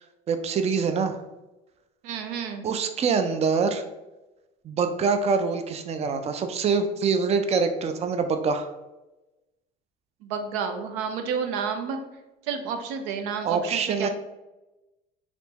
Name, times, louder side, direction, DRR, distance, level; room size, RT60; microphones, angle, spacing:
voice 1, 0.3-1.2 2.6-3.8 4.6-8.7 13.4-14.1, right 5 dB, 30° right, 8 dB, 0.4 m, -25 dB
voice 2, 2.0-2.7 10.2-12.0 12.5-14.1, right 6 dB, 85° right, 6 dB, 0.5 m, -30 dB
3.4 x 3.0 x 2.8 m, 1.0 s
supercardioid pair, 90°, 21 cm